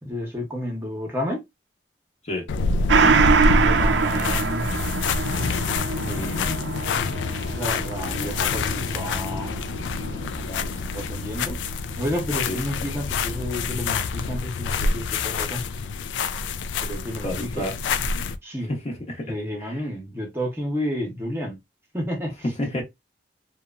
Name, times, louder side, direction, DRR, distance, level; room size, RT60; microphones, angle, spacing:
voice 1, 0.0-1.4 3.0-4.7 6.0-6.7 7.6-9.5 10.0-11.6 12.0-15.6 16.8-17.7 18.4-18.7 19.2-21.6 21.9-22.5, equal, 15° right, 0.8 m, -31 dB
sound 1, 2.5-18.4, left 4 dB, 80° left, 0.3 m, -27 dB
Gong, 2.9-11.9 12.2-12.3, right 5 dB, 70° right, 0.4 m, -25 dB
voice 2, 17.2-17.7 18.7-19.3 19.6-19.8 22.6-22.8, left 1 dB, 35° left, 0.8 m, -30 dB
2.9 x 2.2 x 2.3 m
head